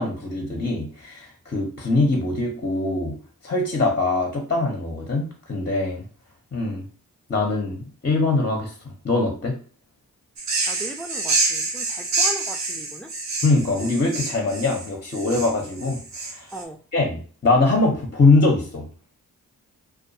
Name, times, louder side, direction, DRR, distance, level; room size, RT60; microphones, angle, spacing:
voice 1, 0.0-3.1 3.4-6.0 6.5-6.8 7.3-8.7 9.0-9.5 13.4-16.0 16.3-16.5 16.9-18.8, left 3 dB, 30° left, 1 dB, 0.8 m, -22 dB
sound 1, 10.4-16.6, right 3 dB, 45° right, 0.7 m, -27 dB
voice 2, 10.7-13.1 16.5-16.8, right 2 dB, 5° left, 5 dB, 0.3 m, -37 dB
2.4 x 2.2 x 2.6 m, 0.41 s
supercardioid pair, 45°, 37 cm